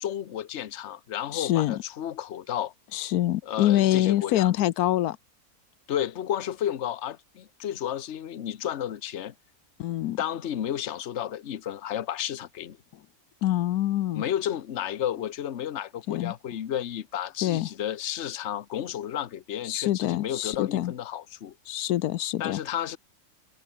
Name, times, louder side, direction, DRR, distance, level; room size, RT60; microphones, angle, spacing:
voice 1, 0.0-2.7 3.4-4.5 5.9-9.3 10.2-12.8 14.1-21.5 22.4-23.0, left 10 dB, 55° left, 1.1 m, -32 dB
voice 2, 1.3-1.7 2.9-5.2 9.8-10.2 13.4-14.2 16.1-16.3 17.4-17.7 19.6-20.9 21.7-22.6, left 14 dB, 85° left, 1.2 m, -25 dB
omnidirectional pair, 1.6 m